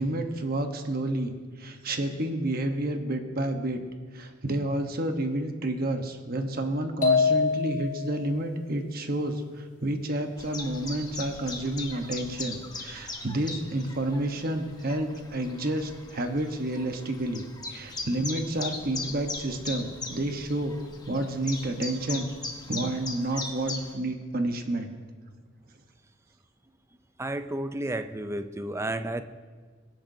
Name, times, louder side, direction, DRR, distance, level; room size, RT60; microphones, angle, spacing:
voice 1, 0.0-3.8 4.1-20.7 21.1-22.3 22.7-24.9, right 1 dB, 50° right, 5 dB, 1.1 m, -30 dB
sound 1, 7.0-8.2, left 5 dB, 45° left, 3.3 m, -24 dB
Chirp tweet, 10.4-23.9, left 3 dB, 20° left, 1.2 m, -39 dB
voice 2, 27.2-29.2, right 1 dB, 15° right, 10 dB, 0.5 m, -32 dB
22.5 x 10.5 x 2.8 m, 1.5 s
head